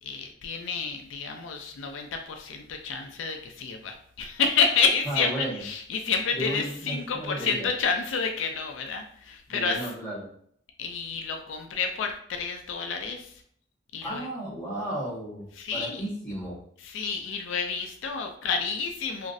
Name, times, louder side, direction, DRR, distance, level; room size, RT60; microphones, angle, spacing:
voice 1, 0.0-9.8 10.8-13.3 13.9-14.3 15.6-16.0 16.8-19.3, left 5 dB, 90° left, 4 dB, 0.4 m, -29 dB
voice 2, 5.0-5.6 6.3-7.7 9.5-10.3 14.0-16.6, right 1 dB, 15° left, -9 dB, 1.4 m, -34 dB
3.0 x 2.5 x 2.5 m, 0.63 s
head